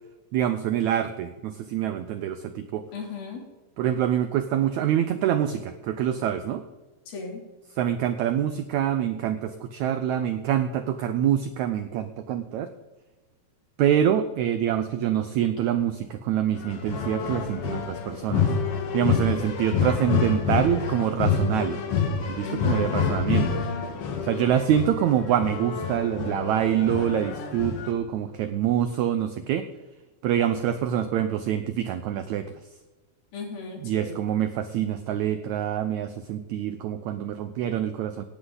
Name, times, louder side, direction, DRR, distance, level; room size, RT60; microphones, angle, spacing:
voice 1, 0.3-2.9 3.8-6.6 7.8-12.7 13.8-18.5 18.9-21.8 22.2-23.6 24.2-29.7 30.2-32.5 33.8-38.2, right 10 dB, 85° right, 10 dB, 1.6 m, -25 dB
voice 2, 2.9-3.4 7.1-7.4 22.4-23.0 33.3-34.2, left 4 dB, 85° left, 0 dB, 4.9 m, -35 dB
sound 1, 16.6-27.9, left 6 dB, 55° left, 2.0 m, -27 dB
18.0 x 11.5 x 3.9 m, 1.1 s
omnidirectional pair, 4.2 m